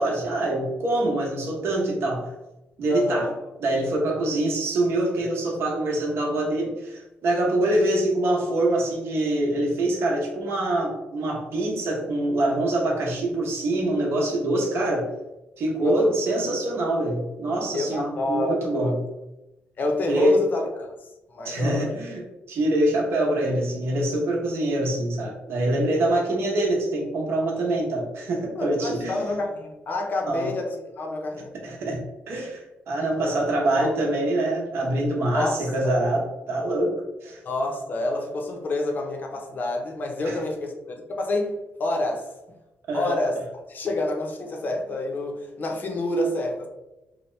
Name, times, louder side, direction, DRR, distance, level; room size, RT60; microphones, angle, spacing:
voice 1, 0.0-2.3 2.8-3.3 3.6-15.1 15.6-18.9 20.1-20.4 21.4-22.2 22.5-29.2 30.3-30.5 31.6-32.0 32.3-37.4 40.2-40.4 42.9-43.2, right 1 dB, 70° right, -1 dB, 0.9 m, -25 dB
voice 2, 2.9-3.3 14.8-14.9 15.8-16.1 17.7-18.9 19.8-20.9 21.3-21.9 26.3-26.4 28.6-31.5 33.2-33.4 33.8-33.9 35.3-35.9 37.4-41.5 41.8-42.3 42.9-43.4 43.7-46.7, left 2 dB, 45° left, 2 dB, 0.6 m, -28 dB
2.8 x 2.1 x 3.1 m, 0.97 s
cardioid pair, 105°, 4 cm